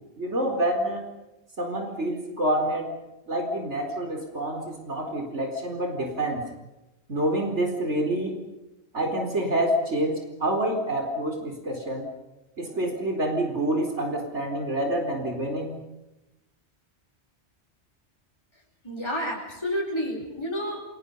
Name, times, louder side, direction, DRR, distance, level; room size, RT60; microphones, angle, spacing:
voice 1, 0.2-1.0 1.6-2.9 3.3-6.4 7.1-8.4 8.9-12.1 12.6-15.8, right 1 dB, 85° right, 3 dB, 4.7 m, -27 dB
voice 2, 18.8-20.8, equal, 25° left, -2 dB, 5.2 m, -30 dB
29.5 x 23.5 x 5.5 m, 0.93 s
omnidirectional pair, 1.2 m